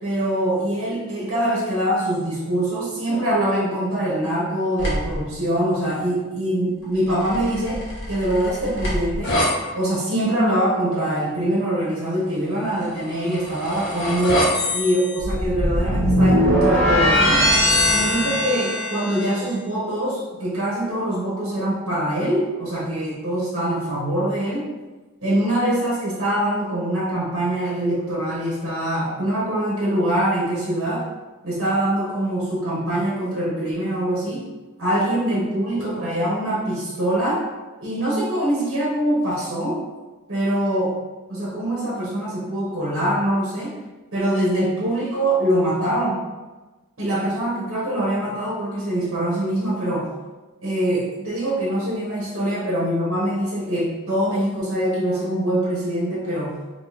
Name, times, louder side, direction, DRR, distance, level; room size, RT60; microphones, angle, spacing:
voice 1, 0.0-7.8 8.1-9.4 9.7-14.5 14.7-17.5 17.9-24.7 25.2-31.1 31.4-34.5 34.8-37.4 37.8-39.8 40.3-41.0 41.3-43.7 44.1-46.2 47.0-50.1 50.6-56.6, right 1 dB, 65° right, -6 dB, 1.0 m, -23 dB
sound 1, 4.8-5.2 7.1-9.5 13.0-19.4, equal, 60° left, 0.9 m, -21 dB
3.5 x 2.7 x 2.9 m, 1.2 s
head